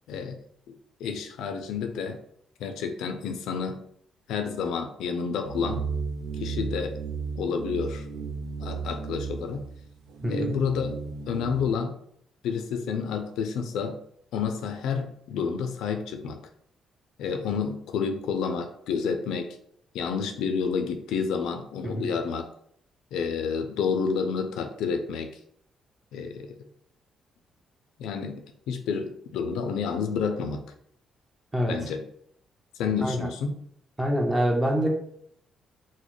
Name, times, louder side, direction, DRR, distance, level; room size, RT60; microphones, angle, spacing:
voice 1, 0.1-0.4 0.7-2.2 2.6-3.8 4.3-5.9 6.4-7.0 7.4-8.1 8.6-9.7 10.3-11.0 11.3-12.0 12.4-14.0 14.3-16.4 17.2-19.6 19.9-22.4 23.1-25.4 26.1-26.6 28.0-30.6 31.7-32.0 32.8-33.5, left 6 dB, 85° left, 7 dB, 0.4 m, -29 dB
sound 1, 5.4-11.7, right 5 dB, 90° right, 0.5 m, -34 dB
voice 2, 10.2-10.5 21.8-22.1 31.5-31.8 33.0-33.2 34.0-34.9, equal, 15° right, 1 dB, 0.7 m, -25 dB
3.9 x 2.1 x 3.1 m, 0.68 s
cardioid pair, 90°, 0 cm